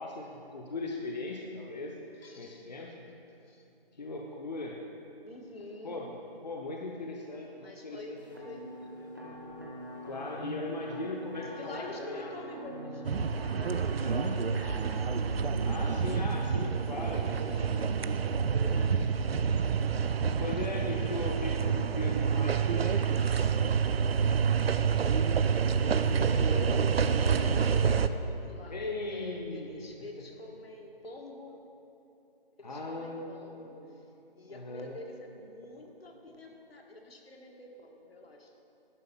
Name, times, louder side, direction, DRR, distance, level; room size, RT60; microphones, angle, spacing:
voice 1, 0.0-2.0 2.4-2.9 4.0-4.8 5.8-6.2 6.4-8.5 10.0-12.3 14.0-14.3 15.7-18.0 18.8-19.1 20.4-23.4 28.7-29.7 30.2-30.3 32.6-33.9 34.5-34.9, left 2 dB, 45° left, 0 dB, 0.8 m, -39 dB
voice 2, 2.2-2.5 3.4-3.7 5.2-6.0 7.6-9.2 11.6-13.0 13.5-14.7 17.1-19.9 26.4-28.8 29.1-31.6 32.6-34.0 34.4-38.6, left 2 dB, 85° left, 1 dB, 1.7 m, -47 dB
sound 1, 8.2-15.7, equal, 20° right, 0.6 m, -43 dB
sound 2, 13.0-28.1, right 6 dB, 85° right, 0.5 m, -28 dB
11.0 x 5.1 x 5.5 m, 2.9 s
figure-of-eight pair, 175°, 30 cm